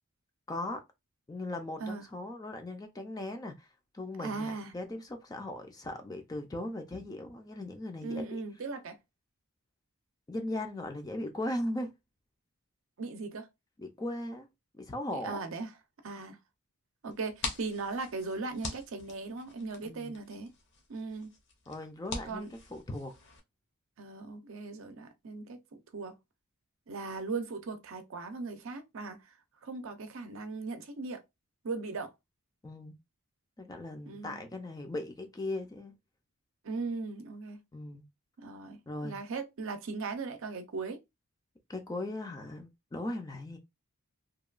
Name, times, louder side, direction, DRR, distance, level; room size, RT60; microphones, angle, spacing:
voice 1, 0.5-0.8 1.3-3.7 3.9-8.4 10.3-11.9 13.8-14.5 14.7-15.4 19.8-20.1 21.7-23.1 32.6-32.9 33.6-35.9 37.7-38.0 38.9-39.2 41.7-43.6, left 1 dB, 15° left, 0.4 m, -38 dB
voice 2, 4.2-4.7 8.0-9.0 13.0-13.5 15.2-15.7 16.0-16.4 17.0-20.5 20.9-21.3 22.3-22.5 24.0-26.1 26.9-29.2 29.6-31.2 31.6-32.1 34.1-34.4 36.6-37.6 38.4-41.0, right 4 dB, 65° right, 0.5 m, -38 dB
sound 1, 17.1-23.4, left 3 dB, 55° left, 0.7 m, -44 dB
2.8 x 2.2 x 2.3 m
head